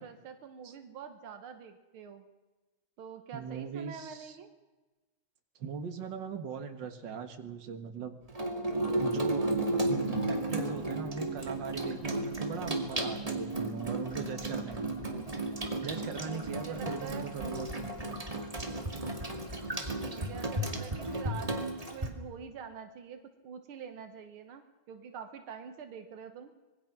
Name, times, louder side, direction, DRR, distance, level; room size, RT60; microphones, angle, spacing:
voice 1, 0.0-2.3 3.0-4.5 16.3-17.3 20.0-26.5, right 7 dB, 85° right, 7 dB, 2.1 m, -46 dB
voice 2, 3.3-4.4 5.6-8.2 9.0-9.5 9.9-14.9 15.8-17.7, right 6 dB, 60° right, 6 dB, 2.2 m, -39 dB
Water tap faucet / Sink (filling or washing), 8.3-22.1, right 2 dB, 15° right, 2.3 m, -34 dB
26.0 x 20.5 x 6.0 m, 1.2 s
omnidirectional pair, 2.3 m